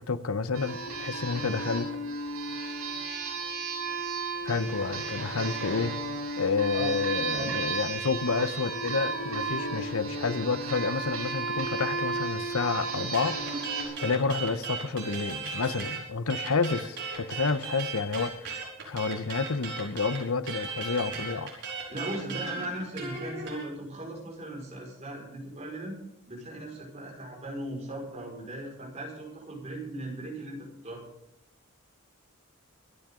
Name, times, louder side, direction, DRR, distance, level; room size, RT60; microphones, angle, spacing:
voice 1, 0.1-1.9 4.4-5.9 6.4-13.4 14.0-21.5, left 4 dB, 85° left, 13 dB, 0.9 m, -29 dB
sound 1, 0.5-13.8, right 3 dB, 85° right, 7.4 m, -33 dB
voice 2, 6.7-7.6 21.9-26.0 26.3-31.1, right 1 dB, 30° right, -1 dB, 5.3 m, -38 dB
sound 2, 13.1-16.0 16.3-23.6, right 5 dB, 55° right, 5.5 m, -36 dB
26.0 x 10.5 x 3.8 m, 0.79 s
head